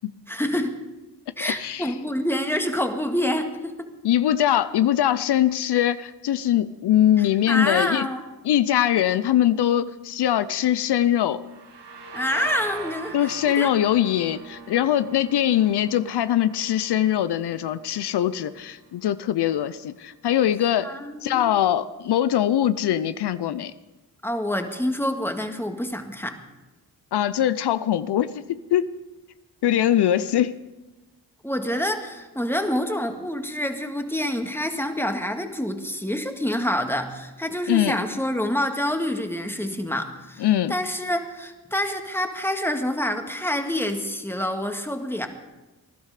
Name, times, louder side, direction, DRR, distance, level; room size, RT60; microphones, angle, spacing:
voice 1, 0.3-0.8 1.4-3.9 7.2-8.3 12.1-13.2 13.6-13.7 20.8-21.5 24.2-26.4 31.4-45.3, left 1 dB, 5° left, 5 dB, 1.8 m, -27 dB
voice 2, 1.4-1.9 4.0-8.1 8.4-11.4 13.1-20.9 21.2-23.7 27.1-28.9 29.6-30.5 37.7-38.0 40.4-40.7, left 11 dB, 75° left, 15 dB, 0.6 m, -22 dB
sound 1, 11.4-19.0, right 4 dB, 80° right, 1.7 m, -41 dB
19.5 x 11.5 x 4.9 m, 1.1 s
cardioid pair, 55°, 40 cm